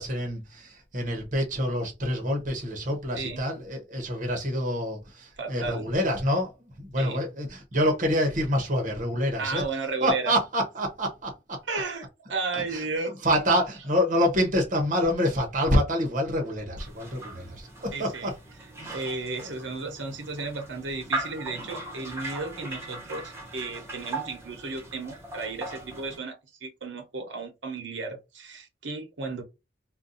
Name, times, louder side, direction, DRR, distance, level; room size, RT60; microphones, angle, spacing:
voice 1, 0.0-6.5 6.8-9.6 10.0-11.6 12.5-12.8 13.2-18.3 18.8-19.0 19.4-19.5, equal, 45° right, 0.8 m, -27 dB
voice 2, 5.4-5.9 7.0-7.2 9.4-10.3 11.7-13.2 17.9-18.3 18.9-29.4, right 3 dB, 90° right, 0.9 m, -34 dB
sound 1, 16.8-26.2, right 2 dB, 15° right, 0.9 m, -39 dB
2.5 x 2.2 x 3.9 m
head